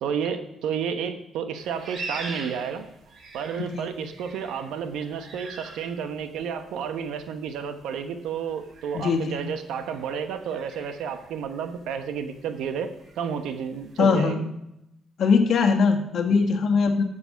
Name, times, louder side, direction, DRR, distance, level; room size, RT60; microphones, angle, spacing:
voice 1, 0.0-2.8 3.3-14.5 16.3-16.5, right 7 dB, 85° right, 8 dB, 1.1 m, -31 dB
sound 1, 1.6-14.1, right 3 dB, 55° right, 2.7 m, -44 dB
voice 2, 8.9-9.5 14.0-14.4 15.2-17.0, left 5 dB, 65° left, 3 dB, 1.6 m, -21 dB
12.5 x 7.0 x 5.1 m, 0.83 s
cardioid pair, 90°, 0 cm